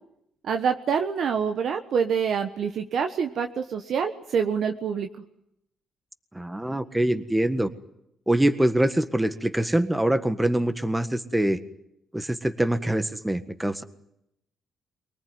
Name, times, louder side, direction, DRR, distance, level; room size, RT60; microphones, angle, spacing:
voice 1, 0.4-5.1, right 6 dB, 65° right, 6 dB, 1.3 m, -26 dB
voice 2, 6.3-7.7 8.3-11.6 12.1-13.8, right 1 dB, 10° right, 10 dB, 1.6 m, -24 dB
24.0 x 19.0 x 9.5 m, 0.80 s
cardioid pair, 90°, 0 cm